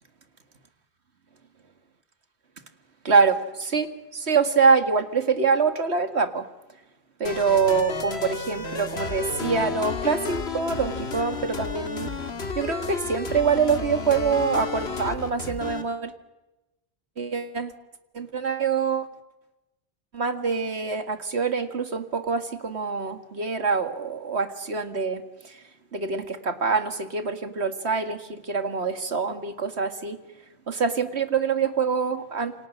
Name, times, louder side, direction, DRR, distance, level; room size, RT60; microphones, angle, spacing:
voice 1, 3.0-6.4 7.2-12.1 12.6-16.1 17.2-17.7 18.1-19.1 20.1-25.6 25.9-30.2 30.7-32.5, right 5 dB, 90° right, 9 dB, 2.3 m, -25 dB
sound 1, 7.2-15.8, left 4 dB, 75° left, 2.1 m, -32 dB
29.0 x 25.5 x 6.5 m, 1.0 s
omnidirectional pair, 1.1 m